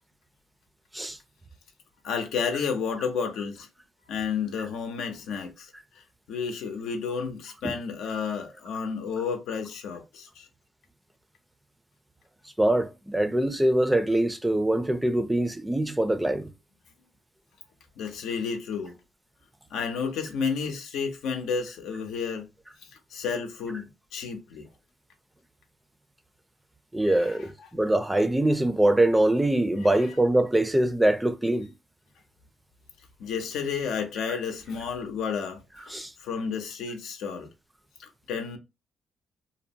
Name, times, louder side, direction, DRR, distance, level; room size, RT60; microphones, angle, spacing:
voice 1, 2.0-3.7 4.1-10.5 18.0-18.9 19.7-22.5 23.1-24.7 27.0-27.4 33.2-35.9 36.2-37.5 38.0-38.6, left 6 dB, 85° left, 0.6 m, -31 dB
voice 2, 12.6-16.5 26.9-31.7 35.9-36.1, right 1 dB, 10° right, 0.4 m, -23 dB
2.7 x 2.0 x 2.7 m
cardioid pair, 90°, 0 cm